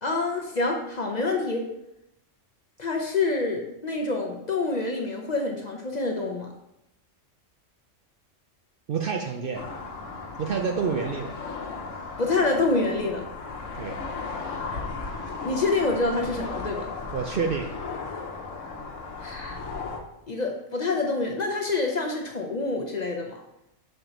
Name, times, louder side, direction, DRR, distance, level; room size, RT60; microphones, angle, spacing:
voice 1, 0.0-1.7 2.8-6.5 12.2-13.3 15.4-16.9 19.2-19.6 20.3-23.4, left 3 dB, 40° left, 1 dB, 0.7 m, -27 dB
voice 2, 8.9-9.6 10.4-11.4 13.7-14.0 17.1-17.7, right 5 dB, 60° right, 3 dB, 0.6 m, -28 dB
sound 1, 9.5-20.0, left 4 dB, 85° left, 1.2 m, -36 dB
6.6 x 4.6 x 3.8 m, 0.85 s
omnidirectional pair, 1.3 m